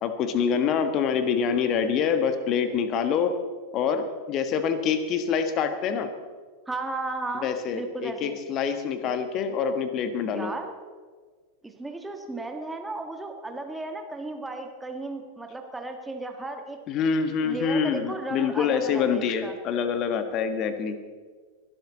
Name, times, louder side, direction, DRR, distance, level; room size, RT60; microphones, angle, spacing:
voice 1, 0.0-3.3 3.7-6.1 7.3-10.5 16.9-21.0, left 6 dB, 35° left, 9 dB, 1.5 m, -26 dB
voice 2, 6.7-8.4 10.2-10.7 11.6-16.8 17.4-19.6, right 2 dB, 10° right, 4 dB, 1.7 m, -35 dB
22.5 x 12.0 x 4.0 m, 1.5 s
figure-of-eight pair, 90°, 0 cm